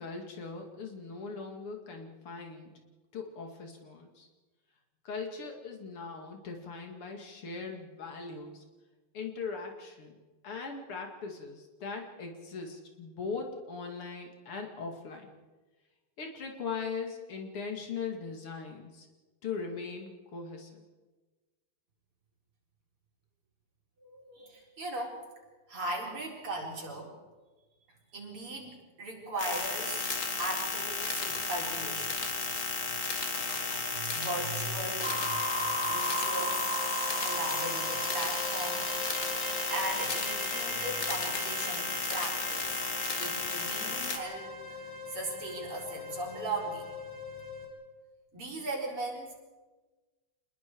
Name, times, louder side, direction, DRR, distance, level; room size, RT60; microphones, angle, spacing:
voice 1, 0.0-2.7 3.1-4.3 5.1-8.6 9.1-15.3 16.2-19.1 19.4-20.8, left 5 dB, 80° left, 3 dB, 3.3 m, -40 dB
voice 2, 24.0-25.2 25.7-27.2 27.9-30.1 30.4-32.1 33.9-36.7 37.2-46.9 48.3-49.3, right 2 dB, 80° right, -1 dB, 5.1 m, -38 dB
sound 1, 29.4-44.2, left 4 dB, 40° left, 2.0 m, -33 dB
sound 2, 35.0-47.7, equal, 10° right, 3.6 m, -37 dB
27.0 x 21.0 x 4.8 m, 1.3 s
omnidirectional pair, 2.4 m